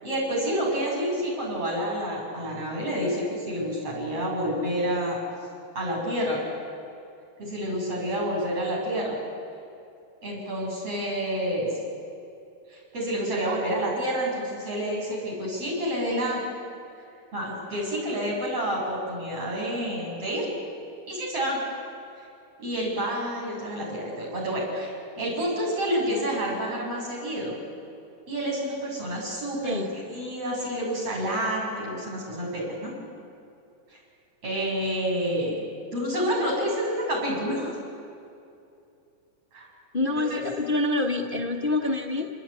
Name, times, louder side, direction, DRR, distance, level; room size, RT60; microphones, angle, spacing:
voice 1, 0.0-5.2 5.8-6.4 7.4-9.2 10.2-11.7 12.7-16.4 17.3-20.5 21.1-21.6 22.6-27.6 28.3-32.9 33.9-34.0 34.4-35.6 35.9-37.8 39.5-39.7 40.3-40.4, equal, 45° right, -3 dB, 8.7 m, -29 dB
voice 2, 39.9-42.3, left 2 dB, 85° left, 2 dB, 0.4 m, -26 dB
28.5 x 20.5 x 9.8 m, 2.6 s
omnidirectional pair, 3.7 m